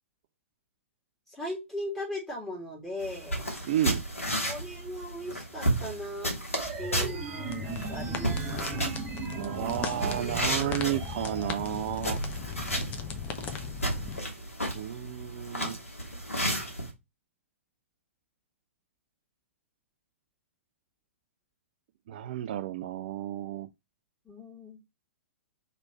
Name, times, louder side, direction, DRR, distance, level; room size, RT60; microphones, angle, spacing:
voice 1, 1.3-3.4 4.4-6.3 6.8-8.9 24.2-24.8, left 1 dB, 5° left, 1.7 m, -38 dB
sound 1, 3.0-16.9, right 1 dB, 80° left, 1.4 m, -33 dB
voice 2, 3.7-4.0 9.3-12.2 14.7-15.8 22.1-23.7, right 12 dB, 40° right, 0.3 m, -32 dB
sound 2, 6.6-11.6, right 5 dB, 25° right, 0.8 m, -38 dB
sound 3, 7.5-14.2, left 7 dB, 20° left, 0.5 m, -38 dB
3.1 x 3.1 x 4.0 m
figure-of-eight pair, 110°, 7 cm